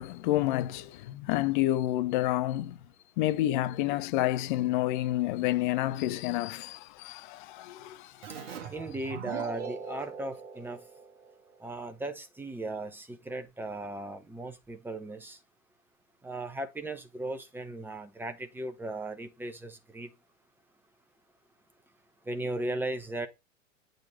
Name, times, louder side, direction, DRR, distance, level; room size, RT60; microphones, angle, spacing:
voice 1, 0.0-2.8 3.2-8.1, left 15 dB, 40° left, 0.6 m, -29 dB
Keyboard (musical), 8.2-11.6, right 7 dB, 50° right, 1.7 m, -41 dB
voice 2, 8.7-10.8 11.6-15.4 16.2-20.1 22.3-23.3, right 2 dB, 5° right, 1.0 m, -37 dB
8.6 x 6.6 x 4.0 m
figure-of-eight pair, 95°, 40 cm